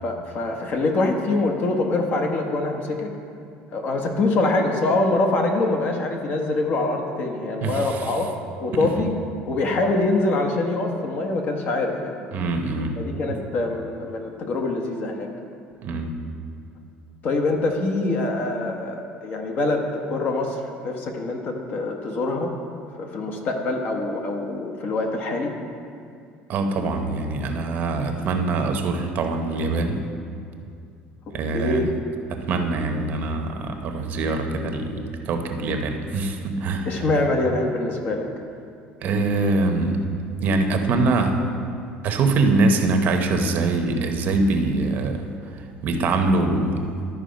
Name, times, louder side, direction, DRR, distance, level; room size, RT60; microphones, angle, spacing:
voice 1, 0.0-3.1 3.7-8.3 8.6-9.1 9.5-12.2 13.0-15.3 17.2-22.5 23.0-25.5 31.5-31.9 36.8-38.3, left 2 dB, 45° left, 3 dB, 1.1 m, -24 dB
voice 2, 7.6-8.1 8.7-8.9 12.3-12.9 13.3-13.4 15.8-16.1 26.5-30.0 31.3-31.9 32.3-37.1 39.0-40.0 40.4-41.4 42.0-45.3 45.8-46.9, right 3 dB, 50° right, 5 dB, 0.8 m, -23 dB
11.5 x 4.7 x 5.2 m, 2.4 s
cardioid pair, 125°, 4 cm